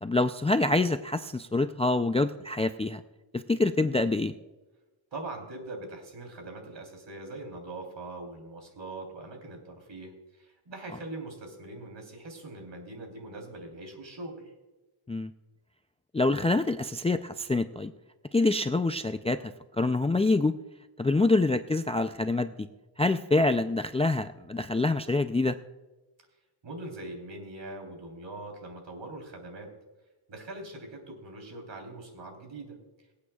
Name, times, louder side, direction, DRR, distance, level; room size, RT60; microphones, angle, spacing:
voice 1, 0.0-3.0 3.3-4.3 15.1-15.3 16.1-17.9 18.3-20.5 21.0-22.7 23.0-25.6, left 2 dB, 15° left, 9 dB, 0.4 m, -26 dB
voice 2, 5.1-14.5 26.6-29.7 30.3-32.8, right 2 dB, 65° right, 3 dB, 3.6 m, -42 dB
23.5 x 8.6 x 2.3 m, 1.1 s
cardioid pair, 90°, 48 cm